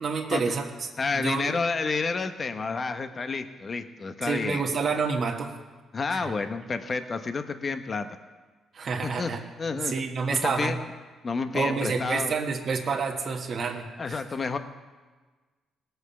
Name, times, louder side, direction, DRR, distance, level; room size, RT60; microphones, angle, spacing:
voice 1, 0.0-0.9 1.1-1.6 4.2-5.5 6.1-6.3 8.7-9.4 9.7-10.7 11.5-14.2, right 5 dB, 50° right, 2 dB, 1.5 m, -28 dB
voice 2, 1.0-4.6 5.9-8.1 9.0-9.3 9.6-9.9 10.4-10.9 11.2-12.3 14.0-14.6, left 4 dB, 40° left, 8 dB, 1.0 m, -30 dB
18.5 x 8.0 x 6.9 m, 1.3 s
cardioid pair, 90°, 0 cm